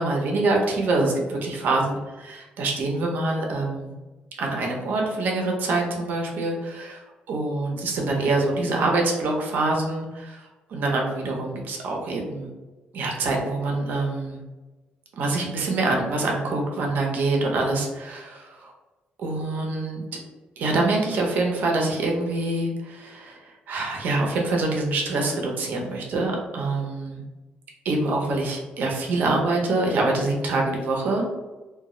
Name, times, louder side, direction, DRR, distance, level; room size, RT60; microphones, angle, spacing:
voice 1, 0.0-3.9 4.4-12.5 12.9-14.4 15.1-18.7 19.2-20.0 20.6-27.2 27.8-31.3, right 2 dB, 65° right, 0 dB, 0.6 m, -25 dB
2.3 x 2.0 x 3.6 m, 1.2 s
cardioid pair, 135°, 3 cm